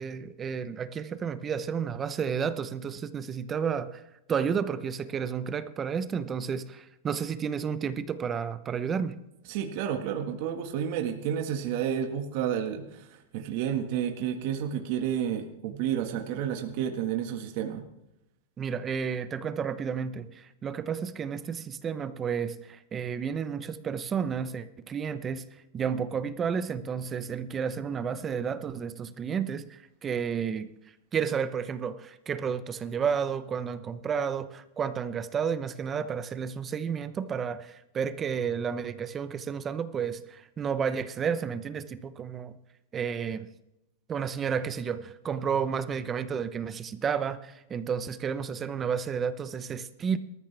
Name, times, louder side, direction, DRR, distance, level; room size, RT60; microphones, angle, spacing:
voice 1, 0.0-4.0 4.3-9.2 18.6-25.5 25.7-30.7 31.1-42.6 42.9-43.5 44.1-50.2, right 7 dB, 20° right, 0.8 m, -31 dB
voice 2, 9.5-13.1 13.3-17.8, right 9 dB, 50° right, 1.6 m, -30 dB
19.5 x 13.5 x 3.4 m
supercardioid pair, 145°, 0 cm